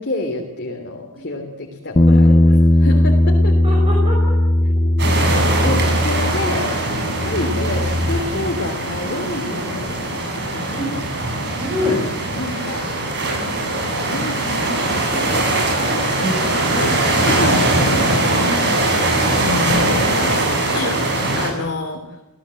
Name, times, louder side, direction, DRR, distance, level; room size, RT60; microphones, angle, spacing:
voice 1, 0.0-2.5 2.8-3.7 5.6-11.0 12.4-12.8 13.3-13.5 14.1-16.9 17.4-17.7 18.3-18.6 19.8-20.4 20.7-21.0 21.3-22.2, left 2 dB, 55° left, 1 dB, 3.3 m, -28 dB
Bass guitar, 2.0-6.7 7.0-8.2, left 1 dB, 25° left, 0.8 m, -16 dB
voice 2, 2.1-2.6 3.3-5.1 8.3-8.5 10.8-10.9 11.6-12.1 16.2-16.4 16.7-18.0 19.4-19.9, left 2 dB, 25° right, -1 dB, 5.9 m, -27 dB
sound 1, 5.0-21.5, right 2 dB, 55° right, 7.5 m, -21 dB
29.5 x 17.0 x 7.8 m, 0.98 s
head